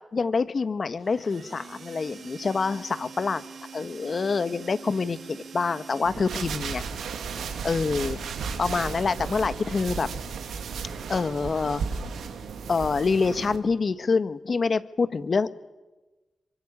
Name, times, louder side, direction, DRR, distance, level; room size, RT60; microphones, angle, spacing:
voice 1, 0.1-3.4 3.7-6.8 7.6-8.2 8.6-10.1 11.1-11.8 12.7-15.5, left 4 dB, 60° left, 13 dB, 1.5 m, -26 dB
sound 1, 1.0-6.9, right 6 dB, 70° right, 2.2 m, -45 dB
sound 2, 6.1-13.6, right 5 dB, 90° right, 2.9 m, -34 dB
26.5 x 24.0 x 8.8 m, 1.1 s
supercardioid pair, 45°, 0 cm